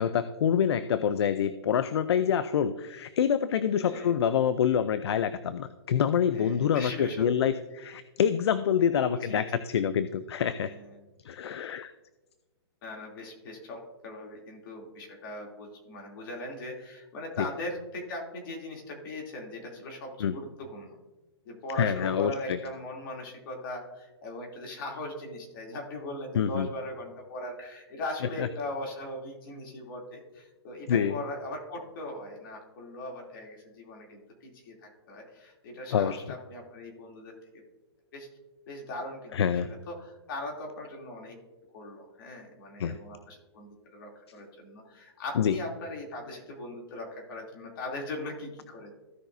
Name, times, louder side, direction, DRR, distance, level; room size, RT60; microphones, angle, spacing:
voice 1, 0.0-10.7 11.2-11.9 17.4-17.5 20.2-20.3 21.8-22.6 26.3-26.7 28.4-28.5 30.9-31.2 35.9-36.2 39.3-39.7 42.8-43.0 45.4-45.6, left 8 dB, 70° left, 13 dB, 0.5 m, -26 dB
voice 2, 3.8-4.1 6.3-7.6 8.9-9.4 10.6-10.9 12.8-21.0 21.4-37.3 38.1-38.3 38.7-41.3 41.7-48.9, left 1 dB, 50° left, 0 dB, 2.9 m, -39 dB
15.5 x 6.0 x 2.6 m, 1.2 s
hypercardioid pair, 145°, 14 cm